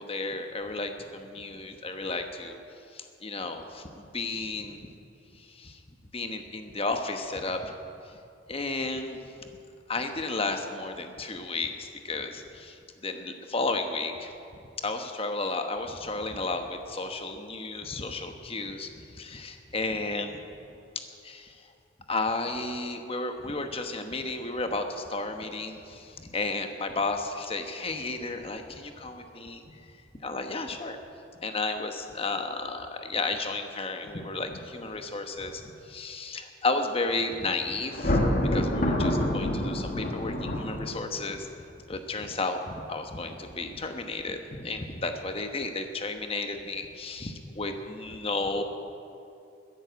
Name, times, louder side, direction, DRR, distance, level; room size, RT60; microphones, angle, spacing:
voice 1, 0.0-2.6 2.9-4.8 5.3-5.8 6.1-7.7 8.5-9.2 9.9-14.3 14.8-20.4 20.9-21.6 22.1-29.9 30.2-31.0 31.4-38.2 38.5-41.5 41.9-48.6, left 3 dB, 30° left, 6 dB, 1.1 m, -33 dB
Thunder, 37.9-41.2, left 1 dB, 45° left, 1.6 m, -27 dB
13.5 x 10.5 x 8.1 m, 2.6 s
head